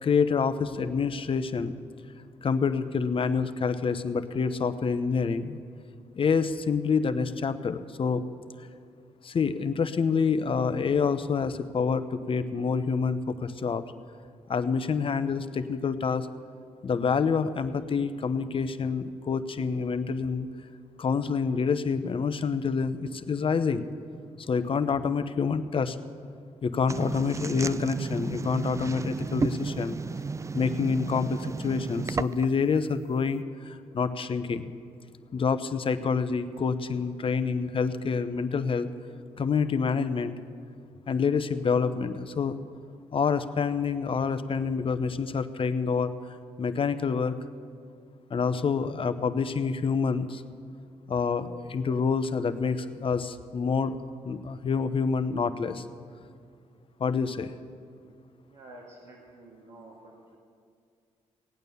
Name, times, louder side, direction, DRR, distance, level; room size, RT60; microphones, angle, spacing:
voice 1, 0.0-1.7 2.4-5.6 6.2-8.2 9.2-13.8 14.5-16.3 16.8-20.5 21.0-23.9 24.5-26.0 26.6-30.0 30.5-34.7 35.3-38.9 39.4-40.4 41.1-42.6 43.1-46.1 46.6-47.3 48.3-50.4 51.1-54.0 54.2-55.8 57.0-57.5, left 5 dB, 50° left, 10 dB, 0.8 m, -27 dB
sound 1, 26.9-32.6, right 4 dB, 25° right, 0.4 m, -33 dB
voice 2, 58.5-60.4, right 2 dB, 80° right, -4 dB, 2.1 m, -49 dB
17.5 x 9.0 x 6.9 m, 2.2 s
cardioid pair, 65°, 12 cm